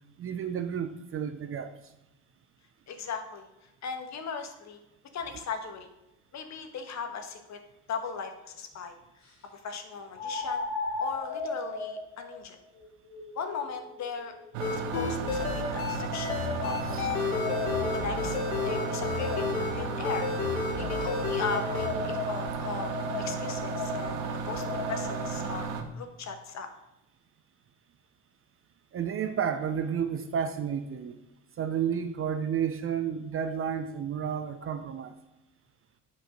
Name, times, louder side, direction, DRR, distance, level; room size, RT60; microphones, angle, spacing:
voice 1, 0.2-1.9 16.9-17.1 28.9-31.2 31.6-35.1, right 8 dB, 30° right, 10 dB, 0.7 m, -31 dB
voice 2, 2.9-3.5 3.8-4.8 5.1-5.9 6.3-7.6 7.9-9.0 9.5-10.6 11.0-12.6 13.3-14.3 14.7-17.3 17.9-18.4 18.6-20.3 20.7-22.9 23.2-26.7, left 5 dB, 40° left, 6 dB, 1.5 m, -38 dB
sound 1, 7.6-7.7 10.1-15.3 16.1-19.8 20.8-25.4, left 3 dB, 60° left, 3.5 m, -37 dB
sound 2, 14.5-25.8, right 5 dB, 65° right, 1.2 m, -34 dB
sound 3, 14.6-21.9, left 5 dB, 85° left, 1.4 m, -32 dB
7.6 x 5.1 x 6.3 m, 0.96 s
hypercardioid pair, 70°, 41 cm